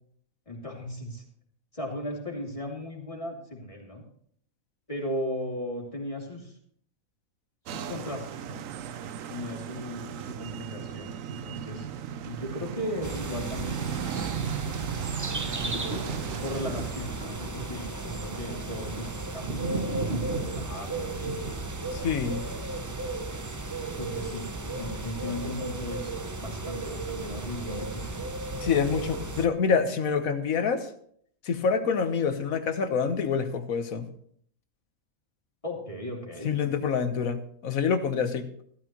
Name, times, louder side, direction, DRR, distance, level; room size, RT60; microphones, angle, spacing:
voice 1, 0.5-1.2 1.7-4.0 4.9-6.6 7.7-8.6 9.3-11.9 12.2-14.4 15.6-21.3 22.2-22.7 24.0-28.2 35.6-36.5, left 1 dB, 25° left, -2 dB, 2.9 m, -37 dB
sound 1, 7.7-16.9, right 8 dB, 75° right, 1.1 m, -36 dB
sound 2, 13.0-29.5, right 2 dB, 20° right, 0.5 m, -35 dB
sound 3, 15.3-23.6 24.1-24.2, right 3 dB, 50° right, 1.2 m, -38 dB
voice 2, 21.9-22.5 28.5-30.9 31.4-34.1 36.4-38.5, left 6 dB, 85° left, 9 dB, 1.5 m, -26 dB
14.5 x 13.0 x 3.0 m, 0.64 s
omnidirectional pair, 1.4 m